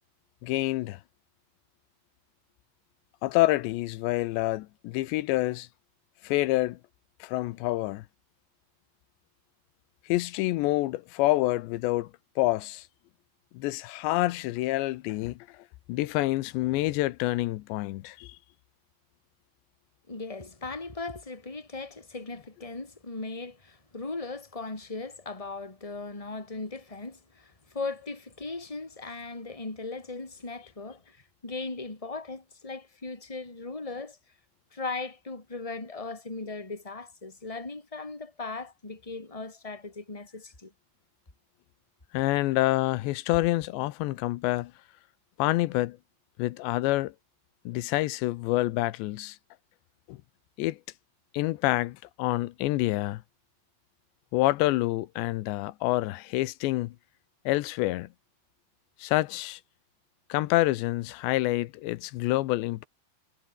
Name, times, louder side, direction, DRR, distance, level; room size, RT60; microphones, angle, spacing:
voice 1, 0.4-1.0 3.2-5.7 6.2-6.8 7.2-8.1 10.1-12.1 12.4-12.9 13.5-18.4 42.1-44.7 45.4-46.0 46.4-47.1 47.7-49.4 50.1-50.2 50.6-50.8 51.3-53.2 54.3-57.0 57.5-58.1 59.0-59.6 60.3-62.9, left 18 dB, 90° left, 3.1 m, -27 dB
voice 2, 20.1-34.2 34.7-40.7 43.3-43.5, left 3 dB, 10° left, 3.2 m, -38 dB
omnidirectional pair, 4.9 m